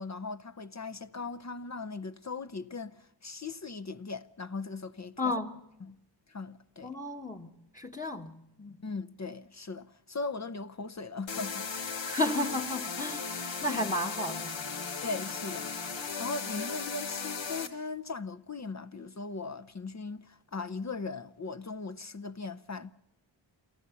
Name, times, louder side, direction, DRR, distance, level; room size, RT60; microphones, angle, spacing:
voice 1, 0.0-5.3 5.8-6.0 6.3-6.9 8.8-11.7 15.0-15.7 16.2-22.9, left 4 dB, 40° left, 0.7 m, -39 dB
voice 2, 5.2-5.5 6.8-8.3 8.6-8.8 12.1-14.5, left 1 dB, 20° left, 1.2 m, -33 dB
sound 1, 11.3-17.7, left 5 dB, 85° left, 1.6 m, -36 dB
28.0 x 14.0 x 7.0 m
wide cardioid pair, 65°, 44 cm